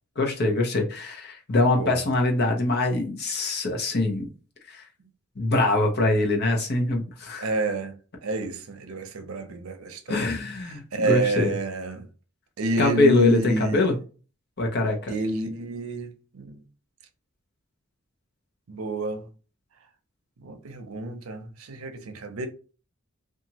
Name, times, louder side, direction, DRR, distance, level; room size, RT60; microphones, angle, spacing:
voice 1, 0.2-4.3 4.7-4.8 5.4-7.5 10.1-11.5 12.8-14.0 14.6-15.1, left 2 dB, 50° left, 0.6 m, -23 dB
voice 2, 7.4-10.2 10.6-12.1 12.6-13.9 15.1-16.6 18.7-19.3 20.4-22.5, right 2 dB, 80° right, 0.6 m, -29 dB
2.8 x 2.4 x 2.8 m
head